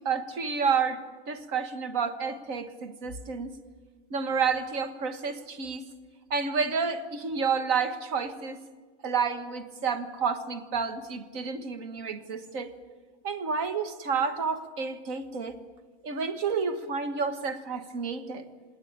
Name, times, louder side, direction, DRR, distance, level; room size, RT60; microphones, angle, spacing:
voice 1, 0.0-3.6 4.1-5.9 6.3-8.6 9.0-12.7 13.2-15.6 16.0-18.5, right 5 dB, 70° right, 8 dB, 1.9 m, -30 dB
26.5 x 19.0 x 8.9 m, 1.4 s
omnidirectional pair, 1.5 m